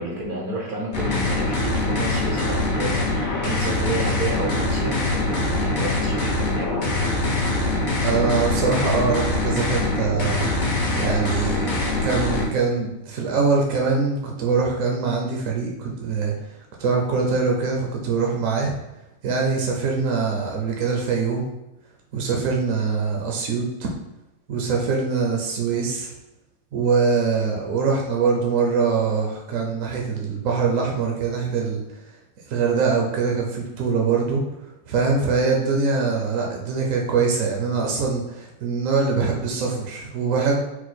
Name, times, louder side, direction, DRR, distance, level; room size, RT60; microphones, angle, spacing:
voice 1, 0.0-7.0, right 1 dB, 50° right, -2 dB, 0.6 m, -30 dB
sound 1, 0.9-12.5, left 2 dB, 45° left, 0.6 m, -23 dB
voice 2, 8.0-10.5 10.9-11.7 12.0-18.8 19.2-21.4 22.1-23.9 24.5-26.1 26.7-31.8 32.5-34.4 34.9-40.6, right 4 dB, 65° right, 0 dB, 1.0 m, -23 dB
4.6 x 2.1 x 4.0 m, 0.96 s
omnidirectional pair, 1.6 m